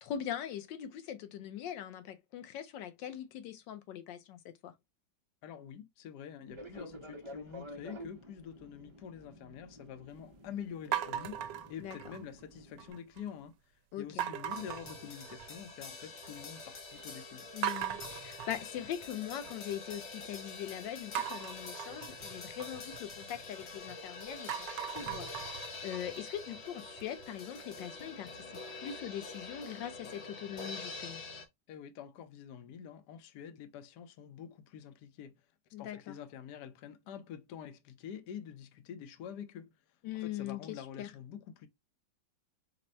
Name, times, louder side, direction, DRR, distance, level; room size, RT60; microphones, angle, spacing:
voice 1, 0.0-4.7 11.8-12.0 13.9-14.3 17.5-25.5 25.8-28.3 28.7-31.2 35.7-36.2 40.0-41.1, left 10 dB, 85° left, 1.4 m, -41 dB
voice 2, 5.4-13.6 14.0-17.5 31.7-35.3 35.8-39.7 40.1-41.7, left 8 dB, 70° left, 1.2 m, -47 dB
Fixed-wing aircraft airplane, 6.5-12.9, equal, 40° right, 0.4 m, -50 dB
sound 1, 10.9-12.4 12.8-13.3 14.2-15.7 16.0-16.6 17.0-17.1 17.6-19.7 21.1-23.9 24.3-27.2, right 10 dB, 80° right, 1.2 m, -40 dB
sound 2, 14.5-31.5, left 3 dB, 50° left, 1.0 m, -46 dB
5.1 x 2.2 x 4.2 m
omnidirectional pair, 1.9 m